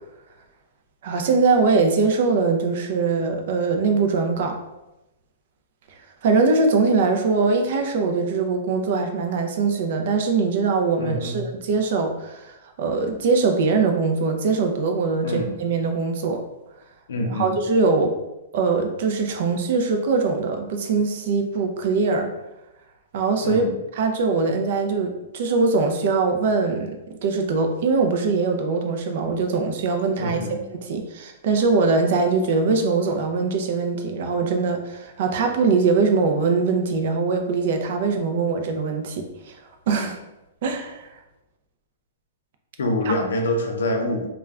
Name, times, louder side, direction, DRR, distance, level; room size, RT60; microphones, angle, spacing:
voice 1, 1.0-4.6 6.2-16.4 17.3-18.1 18.5-22.3 23.1-27.0 27.2-30.4 30.7-39.5 39.9-40.2 40.6-41.0, right 4 dB, 45° right, 5 dB, 0.4 m, -22 dB
voice 2, 11.0-11.4 15.2-15.5 17.1-17.5 23.4-23.7 30.2-30.6 42.8-44.3, left 1 dB, 90° left, 2 dB, 0.6 m, -25 dB
2.2 x 2.1 x 3.5 m, 0.95 s
hypercardioid pair, 170°, 0 cm